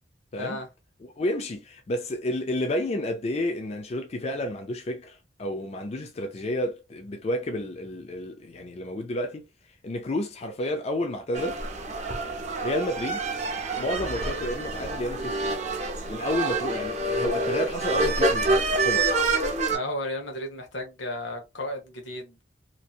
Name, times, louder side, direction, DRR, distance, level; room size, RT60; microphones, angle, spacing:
voice 1, 0.4-0.7 19.7-22.4, left 1 dB, 85° left, 1.1 m, -34 dB
voice 2, 1.1-9.4 9.8-11.6 12.6-13.2 13.8-15.4 16.1-19.1, left 1 dB, 35° left, 0.4 m, -30 dB
sound 1, 11.3-19.8, right 2 dB, 40° right, 0.7 m, -27 dB
2.9 x 2.6 x 2.4 m
head